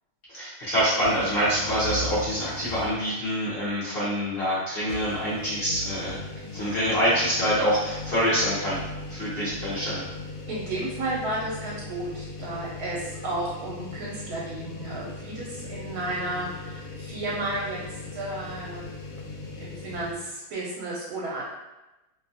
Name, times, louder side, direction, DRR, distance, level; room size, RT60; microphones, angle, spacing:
voice 1, 0.3-6.2 6.5-8.8 9.1-10.0, equal, 50° left, -9 dB, 0.7 m, -26 dB
sound 1, 1.0-3.2 3.6-3.7 4.8-20.2, left 2 dB, 80° left, 1.1 m, -38 dB
voice 2, 10.5-18.9 19.6-21.4, right 2 dB, 80° right, -5 dB, 1.1 m, -33 dB
2.6 x 2.2 x 2.5 m, 1.0 s
omnidirectional pair, 1.6 m